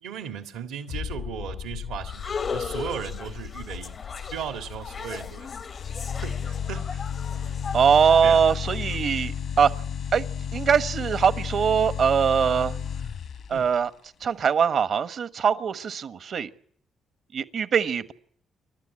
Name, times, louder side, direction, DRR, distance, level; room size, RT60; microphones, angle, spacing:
voice 1, 0.0-3.9 4.3-5.5 6.2-7.0 8.2-8.4 13.5-13.7, right 8 dB, 80° right, 1.9 m, -36 dB
sound 1, 0.9-12.2 12.5-12.6, left 9 dB, 90° left, 1.7 m, -41 dB
sound 2, 2.0-9.0, left 5 dB, 50° left, 0.9 m, -37 dB
sound 3, 5.7-13.7, left 7 dB, 70° left, 1.4 m, -32 dB
voice 2, 7.7-9.7 10.1-10.2 10.5-12.8 13.5-13.9 14.2-16.5 17.3-18.1, right 7 dB, 60° right, 1.2 m, -22 dB
29.0 x 12.5 x 9.9 m
supercardioid pair, 55°, 0 cm